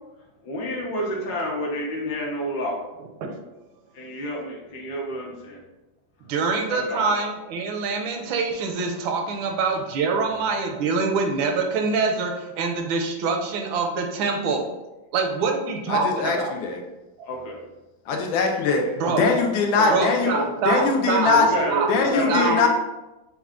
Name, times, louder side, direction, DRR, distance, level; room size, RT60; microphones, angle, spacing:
voice 1, 0.4-2.8 3.9-5.6 6.7-7.1 17.2-17.6 19.2-19.4 19.8-20.5 21.2-22.7, left 1 dB, 60° left, -3 dB, 1.3 m, -29 dB
voice 2, 6.3-14.7 15.1-16.6 17.2-17.3 19.0-19.3 19.9-21.3 21.6-21.9 22.3-22.6, right 4 dB, 85° right, 4 dB, 1.4 m, -25 dB
voice 3, 15.9-16.8 18.1-20.3 20.6-21.5 21.9-22.7, left 4 dB, 85° left, 2 dB, 1.4 m, -22 dB
4.5 x 2.2 x 3.6 m, 1.0 s
omnidirectional pair, 2.1 m